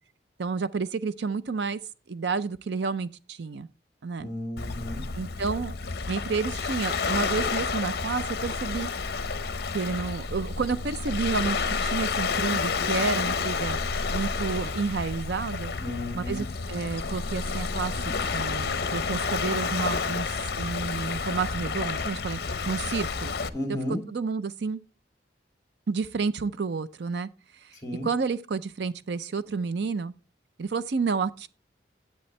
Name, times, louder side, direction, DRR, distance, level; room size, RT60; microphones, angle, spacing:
voice 1, 0.4-1.8 2.1-3.7 4.0-4.3 5.2-5.7 6.1-8.9 9.7-15.7 16.1-23.3 23.7-23.8 24.1-24.8 25.9-27.8 28.0-30.1 30.6-31.5, right 4 dB, 65° right, 0.5 m, -30 dB
voice 2, 4.2-5.0 15.8-16.4 23.5-24.0 27.8-28.1, left 1 dB, 20° left, 2.2 m, -33 dB
Waves surf, 4.6-23.5, left 4 dB, 55° left, 0.7 m, -30 dB
10.5 x 8.3 x 3.2 m
head